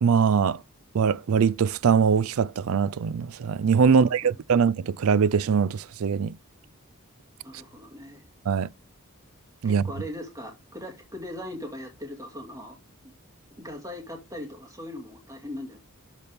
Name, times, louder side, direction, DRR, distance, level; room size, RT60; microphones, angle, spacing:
voice 1, 0.0-0.6 0.9-6.4 8.5-8.7 9.6-9.8, right 6 dB, 70° right, 0.4 m, -22 dB
voice 2, 3.9-4.6 7.4-8.2 9.6-12.8 13.0-13.1 13.6-15.8, left 1 dB, 15° right, 2.2 m, -39 dB
12.0 x 4.1 x 3.5 m
head